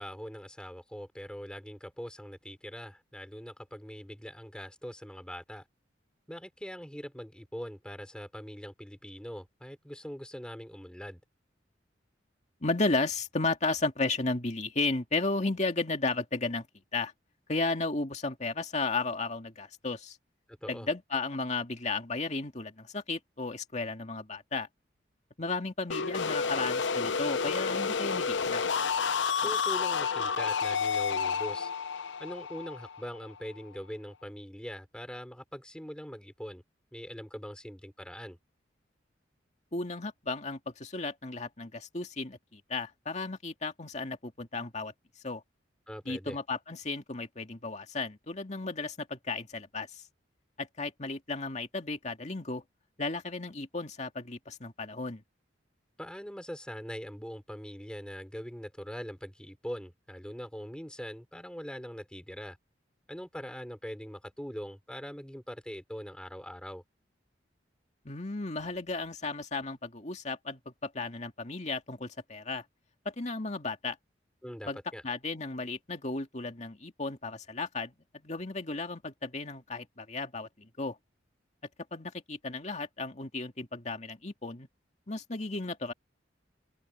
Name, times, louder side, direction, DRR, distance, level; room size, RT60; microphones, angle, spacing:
voice 1, 0.0-5.6 6.3-11.2 20.5-20.9 29.4-31.7 32.2-36.6 36.9-38.4 45.9-46.4 56.0-62.6 63.1-66.8 74.4-75.0, equal, 5° left, 5.3 m, -42 dB
voice 2, 12.6-16.7 16.9-17.1 17.5-20.2 20.7-24.7 25.4-28.6 39.7-44.9 45.2-45.4 46.1-50.0 50.6-52.6 53.0-55.2 68.0-72.6 73.0-74.0 74.7-74.8 75.0-81.0 81.9-84.7 85.1-85.9, left 3 dB, 40° left, 2.2 m, -34 dB
sound 1, 25.9-33.6, left 5 dB, 85° left, 0.7 m, -30 dB
open air
head